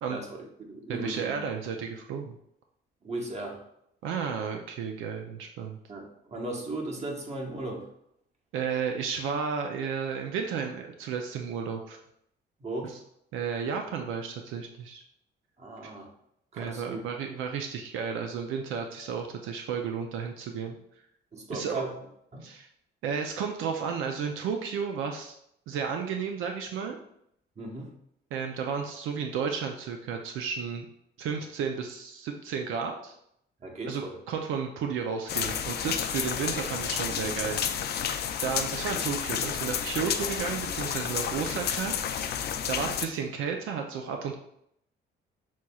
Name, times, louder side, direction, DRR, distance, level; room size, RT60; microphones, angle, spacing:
voice 1, 0.1-1.3 3.0-3.6 5.9-7.9 12.6-13.0 15.6-16.1 16.5-17.0 21.3-21.9 22.3-22.5 27.6-27.9 33.6-34.2, right 2 dB, 35° right, 0 dB, 1.1 m, -37 dB
voice 2, 0.9-2.4 4.0-5.8 8.5-12.0 13.3-15.0 16.5-20.8 21.5-21.8 22.4-22.7 23.0-25.4 25.7-27.0 28.3-30.9 31.2-33.2 33.9-38.0 38.4-41.9 42.7-44.4, right 6 dB, 90° right, 3 dB, 0.5 m, -33 dB
sound 1, 35.3-43.1, left 8 dB, 55° left, 0.4 m, -31 dB
6.2 x 2.9 x 2.3 m, 0.73 s
cardioid pair, 90°, 20 cm